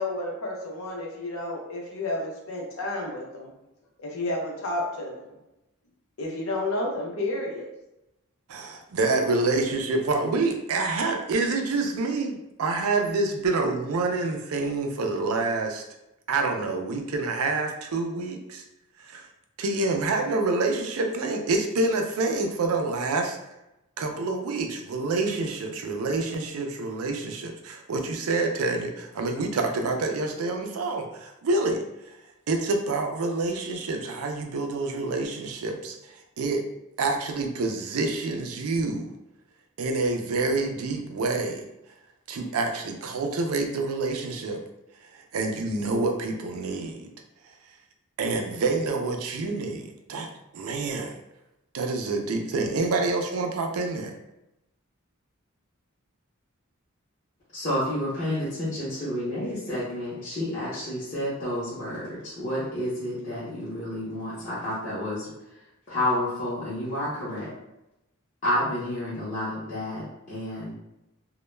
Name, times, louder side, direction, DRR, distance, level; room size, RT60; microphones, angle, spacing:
voice 1, 0.0-3.5 4.0-5.3 6.2-7.7, left 2 dB, 75° left, -1 dB, 0.7 m, -31 dB
voice 2, 8.5-15.8 16.3-18.6 19.0-19.3 19.6-23.4 24.0-32.1 32.5-36.7 37.0-39.1 39.8-41.7 42.3-44.6 45.1-47.1 48.2-50.3 50.5-51.1 51.7-54.1, right 3 dB, 90° right, 4 dB, 0.4 m, -27 dB
voice 3, 57.5-65.3 65.9-67.5 68.4-70.7, left 1 dB, 35° left, -11 dB, 0.7 m, -30 dB
2.2 x 2.1 x 3.1 m, 0.90 s
head